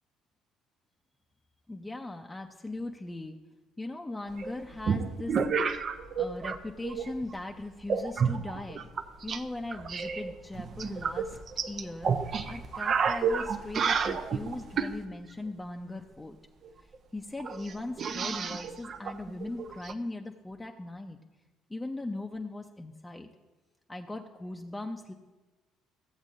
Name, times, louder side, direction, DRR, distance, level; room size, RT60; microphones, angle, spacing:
voice 1, 1.7-3.4 3.8-5.4 6.2-8.9 9.2-11.4 11.7-12.1 12.4-16.4 17.1-21.2 21.7-23.3 23.9-25.1, left 2 dB, 15° left, 4 dB, 0.7 m, -39 dB
sound 1, 4.4-6.6 6.8-7.3 7.9-9.4 9.7-15.0 16.6-16.7 16.9-17.0 17.4-19.9, right 6 dB, 45° right, 0.7 m, -30 dB
15.5 x 8.0 x 2.6 m, 1.2 s
hypercardioid pair, 50°, 0 cm